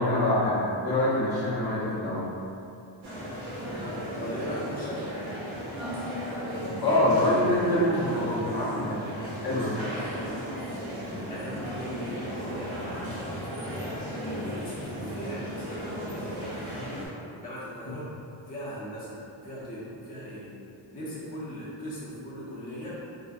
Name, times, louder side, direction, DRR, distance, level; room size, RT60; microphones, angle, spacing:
voice 1, 0.0-2.3 6.6-9.0 9.4-9.8, left 1 dB, 55° left, -9 dB, 0.9 m, -25 dB
sound 1, 3.0-17.1, equal, 85° right, 0.9 m, -35 dB
voice 2, 4.0-5.4 9.8-10.3 11.3-13.9 14.2-17.0 17.4-18.1 18.5-20.6 20.9-22.9, equal, 20° left, -9 dB, 0.7 m, -39 dB
3.7 x 2.2 x 2.5 m, 2.6 s
wide cardioid pair, 95°, 47 cm